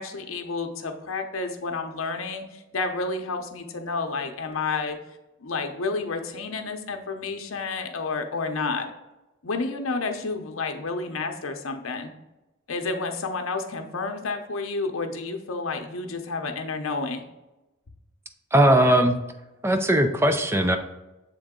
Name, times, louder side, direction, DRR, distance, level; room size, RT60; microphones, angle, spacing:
voice 1, 0.0-5.0 5.4-8.9 9.4-12.1 12.7-17.2, left 3 dB, 70° left, 5 dB, 0.8 m, -30 dB
voice 2, 18.5-19.2 19.6-20.8, right 1 dB, 10° right, 6 dB, 0.5 m, -19 dB
7.2 x 3.9 x 3.7 m, 1.0 s
head